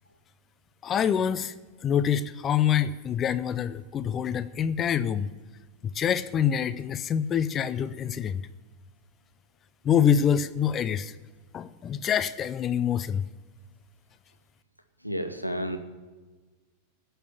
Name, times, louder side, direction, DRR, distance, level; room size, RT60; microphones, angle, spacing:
voice 1, 0.8-1.5 1.8-5.3 5.9-8.4 9.8-11.1 11.5-13.2, left 8 dB, 25° left, 13 dB, 0.5 m, -26 dB
voice 2, 15.0-15.8, equal, 90° right, 7 dB, 1.2 m, -31 dB
17.0 x 5.6 x 10.0 m, 1.3 s
figure-of-eight pair, 90°, 0 cm